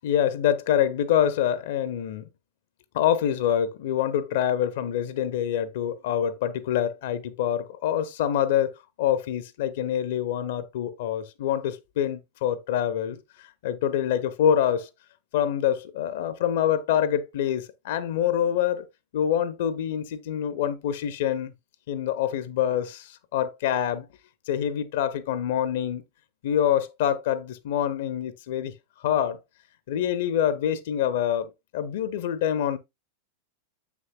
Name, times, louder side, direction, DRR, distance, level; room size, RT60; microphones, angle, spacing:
voice 1, 0.0-2.2 2.9-13.2 13.6-14.9 15.3-18.9 19.1-21.5 21.9-24.1 24.5-26.0 26.4-28.7 29.0-29.4 29.9-32.8, left 10 dB, 55° left, 0.7 m, -26 dB
7.6 x 6.0 x 2.4 m
figure-of-eight pair, 90°, 0 cm